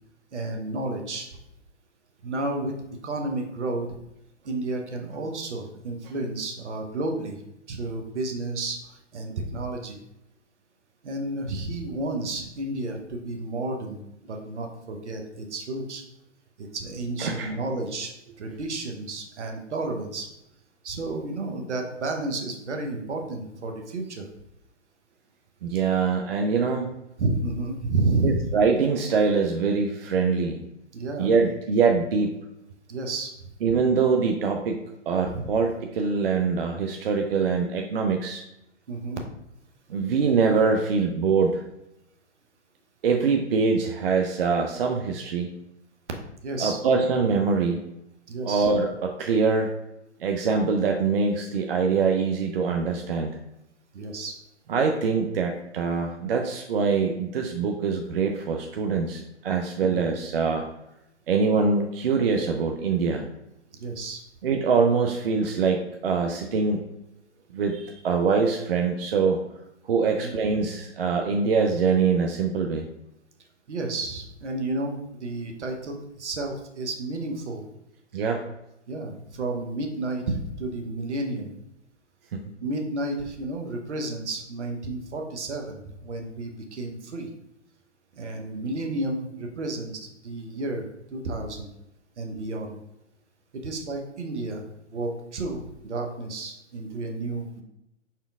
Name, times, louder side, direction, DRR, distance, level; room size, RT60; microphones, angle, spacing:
voice 1, 0.3-1.3 2.2-2.7 3.0-3.9 4.4-7.4 7.7-10.0 11.0-14.0 14.3-16.0 16.6-20.3 20.8-24.3 27.2-28.5 30.9-31.4 32.9-33.3 35.3-35.5 38.9-39.2 46.4-46.8 48.3-48.7 53.9-54.4 59.8-60.0 63.8-64.2 70.1-70.3 73.7-77.6 78.9-81.5 82.6-87.3 88.1-90.8 91.1-91.7 92.2-92.8 93.6-94.6 94.9-97.6, right 2 dB, 70° right, 3 dB, 0.9 m, -31 dB
voice 2, 17.2-17.5 25.6-26.9 28.2-30.6 31.2-32.4 33.6-34.8 35.1-38.4 39.9-41.6 43.0-45.5 46.6-47.8 48.4-49.7 50.2-53.3 54.7-60.6 61.3-63.3 64.4-66.9 67.5-69.4 69.8-72.9 78.1-78.4 82.3-82.5, right 5 dB, 50° right, 3 dB, 0.5 m, -24 dB
5.0 x 4.3 x 2.4 m, 0.85 s
figure-of-eight pair, 130°, 36 cm